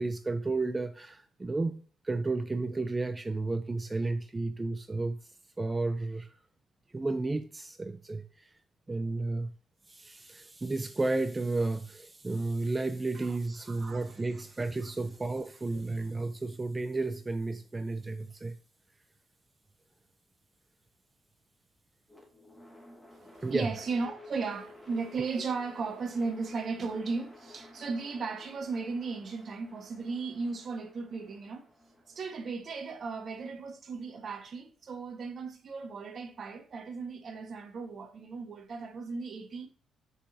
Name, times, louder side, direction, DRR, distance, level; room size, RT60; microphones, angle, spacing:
voice 1, 0.0-5.2 5.6-6.3 6.9-8.5 8.9-9.5 9.9-18.5 23.4-23.7, right 3 dB, 25° right, 0.6 m, -32 dB
voice 2, 13.7-14.1 14.8-14.9 23.1-31.7 32.1-39.7, right 4 dB, 50° right, 1.6 m, -36 dB
sound 1, 22.1-34.2, left 1 dB, 5° left, 2.4 m, -54 dB
8.0 x 6.1 x 2.8 m
supercardioid pair, 70°, 0 cm